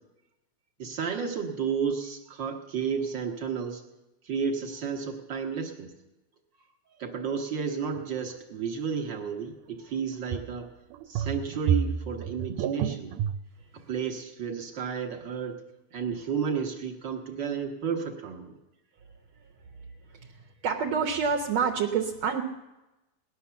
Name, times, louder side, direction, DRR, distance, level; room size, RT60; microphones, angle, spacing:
voice 1, 0.8-3.8 4.2-5.9 7.0-10.7 11.1-13.1 13.7-15.6 15.9-18.5, right 6 dB, 50° right, 2 dB, 1.6 m, -32 dB
sound 1, 8.0-8.1 10.3-10.6 10.9-13.4, right 8 dB, 85° right, 2.2 m, -30 dB
voice 2, 20.1-22.4, right 6 dB, 65° right, 2 dB, 2.0 m, -28 dB
18.0 x 11.0 x 7.0 m, 1.0 s
omnidirectional pair, 3.5 m